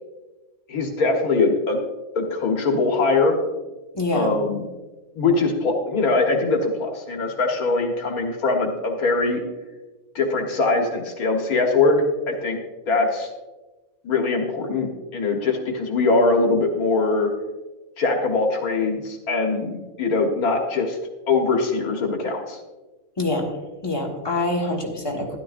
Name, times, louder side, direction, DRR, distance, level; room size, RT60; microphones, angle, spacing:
voice 1, 0.7-1.8 2.2-3.4 4.1-4.7 5.2-9.4 10.2-12.6 12.9-13.3 14.0-17.3 18.0-21.0 21.3-22.6, left 3 dB, 85° left, 2 dB, 1.8 m, -22 dB
voice 2, 3.9-4.4 23.2-23.5 23.8-25.4, left 2 dB, 20° left, -1 dB, 1.5 m, -25 dB
12.5 x 11.5 x 2.5 m, 1.2 s
omnidirectional pair, 1.5 m